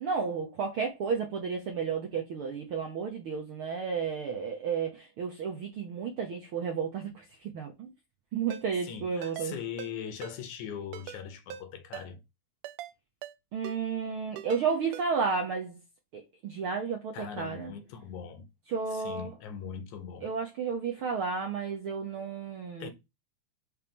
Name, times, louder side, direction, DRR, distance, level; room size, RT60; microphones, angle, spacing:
voice 1, 0.0-7.2 7.5-7.9 8.3-9.6 13.5-15.8 16.1-17.7 18.7-19.3 20.2-22.9, right 6 dB, 70° right, 1.3 m, -32 dB
Ringtone, 8.5-8.6 9.2-9.5 9.8-9.9 10.2-10.4 10.9-11.2 11.5-11.6 11.9-12.1 12.6-12.9 13.2-13.4 13.6-13.8 14.4-14.6 14.9-15.1, right 11 dB, 90° right, 1.5 m, -41 dB
voice 2, 8.8-12.2 17.1-18.5 18.9-20.3 22.8-22.9, left 8 dB, 70° left, 2.2 m, -40 dB
5.7 x 3.2 x 5.2 m
omnidirectional pair, 3.7 m